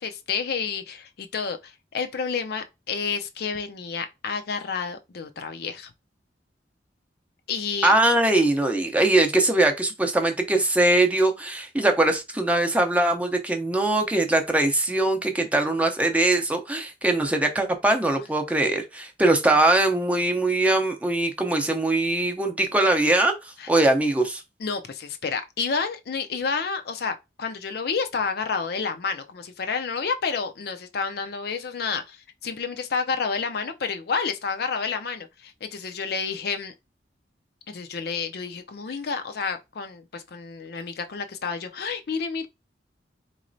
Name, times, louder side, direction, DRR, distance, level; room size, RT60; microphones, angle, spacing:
voice 1, 0.0-5.9 7.5-7.9 23.6-23.7 24.6-36.7 37.7-42.5, left 5 dB, 60° left, 0.5 m, -30 dB
voice 2, 7.8-24.4, right 2 dB, 10° right, 0.6 m, -22 dB
4.0 x 3.0 x 2.6 m
head